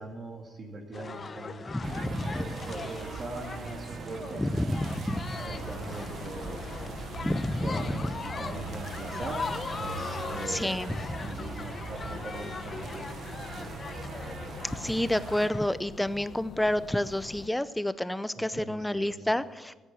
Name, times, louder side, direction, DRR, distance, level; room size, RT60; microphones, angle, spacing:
voice 1, 0.0-4.9 5.4-6.6 7.6-9.4 9.8-10.8 11.2-13.1 13.5-13.7 18.3-19.4, right 2 dB, 45° right, -1 dB, 2.4 m, -41 dB
sound 1, 0.9-15.7, left 4 dB, 35° left, 0.9 m, -40 dB
voice 2, 1.7-2.5 4.4-5.4 7.2-8.1 10.5-11.4 14.7-19.7, left 1 dB, 5° left, 15 dB, 0.6 m, -29 dB
sound 2, 1.8-15.5, right 6 dB, 65° right, 1.2 m, -41 dB
sound 3, 5.4-17.5, left 6 dB, 65° left, 1.0 m, -45 dB
14.0 x 9.9 x 7.7 m, 1.2 s
cardioid pair, 90°, 0 cm